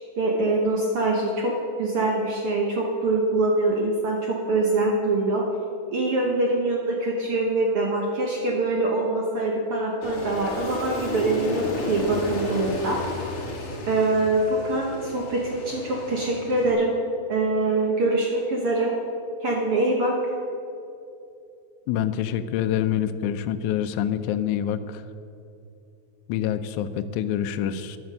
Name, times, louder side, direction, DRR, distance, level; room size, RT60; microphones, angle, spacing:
voice 1, 0.2-1.5 1.8-5.5 5.9-13.0 13.9-17.0 17.3-18.9 19.4-20.1, right 2 dB, 65° right, -1 dB, 1.4 m, -24 dB
Aircraft, 10.0-16.7, left 2 dB, 45° left, 2.5 m, -33 dB
voice 2, 21.9-25.0 26.3-28.0, left 10 dB, 85° left, 10 dB, 1.7 m, -26 dB
14.0 x 10.5 x 5.4 m, 2.7 s
omnidirectional pair, 4.1 m